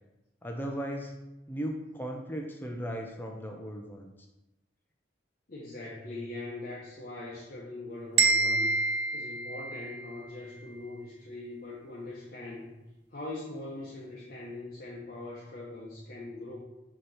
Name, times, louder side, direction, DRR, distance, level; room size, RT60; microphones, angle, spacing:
voice 1, 0.4-1.2 1.5-4.1, equal, 10° left, 2 dB, 0.5 m, -36 dB
voice 2, 5.5-8.7 9.1-12.7 13.1-16.6, left 2 dB, 50° left, -5 dB, 0.9 m, -41 dB
sound 1, 8.2-10.2, right 3 dB, 65° right, 0.6 m, -27 dB
6.4 x 2.9 x 5.5 m, 0.99 s
head